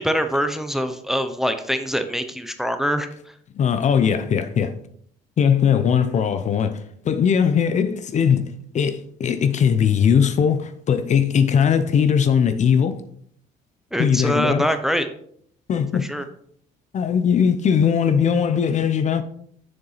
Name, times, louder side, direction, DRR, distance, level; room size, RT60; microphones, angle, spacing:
voice 1, 0.0-3.3 13.9-15.1 16.1-16.2, equal, ahead, 0.7 m, -24 dB
voice 2, 3.6-4.7 5.4-13.0 14.0-14.7 15.7-16.1 16.9-19.2, left 7 dB, 45° left, 0.7 m, -19 dB
6.9 x 6.8 x 4.1 m
cardioid pair, 110°, 17 cm